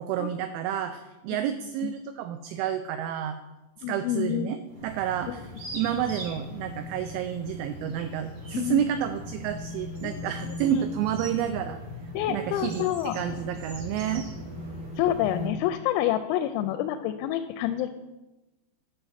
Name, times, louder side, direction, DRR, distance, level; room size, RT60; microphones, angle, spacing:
voice 1, 0.0-3.4 3.9-5.5 5.7-11.8 12.3-14.3, right 10 dB, 85° right, 9 dB, 2.7 m, -30 dB
voice 2, 3.8-4.5 8.5-8.8 10.0-10.3 10.7-10.8 12.1-13.2 15.0-17.9, left 12 dB, 85° left, 8 dB, 3.2 m, -28 dB
sound 1, 4.7-15.5, left 1 dB, 40° right, 2.1 m, -39 dB
10.0 x 6.5 x 5.7 m, 1.1 s
omnidirectional pair, 5.9 m